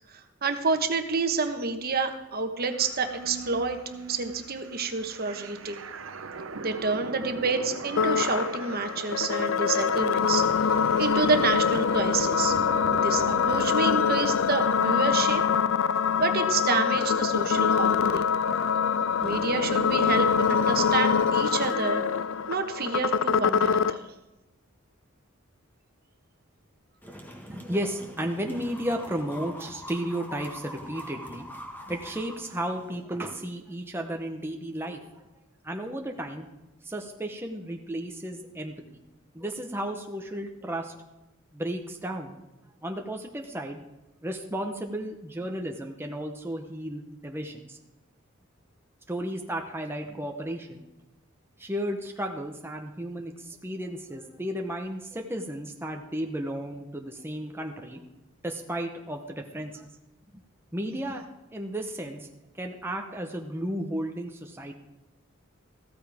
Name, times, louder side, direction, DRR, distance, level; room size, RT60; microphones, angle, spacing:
voice 1, 0.1-3.8 4.1-5.8 6.6-10.7 11.0-12.6 12.9-15.4 16.2-18.2 19.2-22.0 22.5-24.1, right 4 dB, 50° right, 6 dB, 1.2 m, -28 dB
sound 1, 2.7-14.4, right 3 dB, 70° right, 0.8 m, -40 dB
sound 2, 8.0-24.0, left 6 dB, 70° left, 0.5 m, -24 dB
sound 3, 27.0-33.0, equal, 10° left, 1.6 m, -44 dB
voice 2, 27.4-31.5 31.9-35.2 35.6-36.5 36.8-39.0 39.3-40.9 41.5-42.4 42.8-43.8 44.2-47.8 49.1-50.8 51.6-58.0 58.4-59.9 60.7-61.3 61.5-62.3 62.5-64.7, right 1 dB, 10° right, 2 dB, 0.8 m, -34 dB
15.0 x 13.5 x 3.5 m, 1.0 s
head